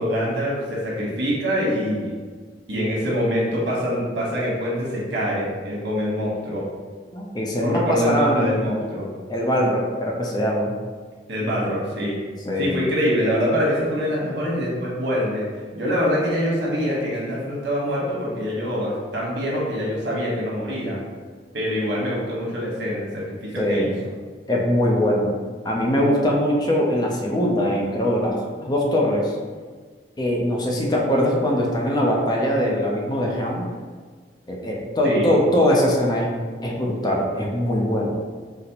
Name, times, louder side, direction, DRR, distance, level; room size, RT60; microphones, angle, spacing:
voice 1, 0.0-2.1 2.7-6.6 7.6-9.1 11.3-12.2 12.6-15.5 15.7-21.0 21.5-23.9 35.0-35.4, equal, 90° right, -5 dB, 1.0 m, -24 dB
voice 2, 7.1-8.6 9.3-10.7 12.4-12.8 23.6-23.9 24.5-25.4 25.6-29.4 30.2-33.7 34.5-36.3 36.6-38.1, equal, 25° left, -2 dB, 0.4 m, -22 dB
4.0 x 2.0 x 2.8 m, 1.5 s
head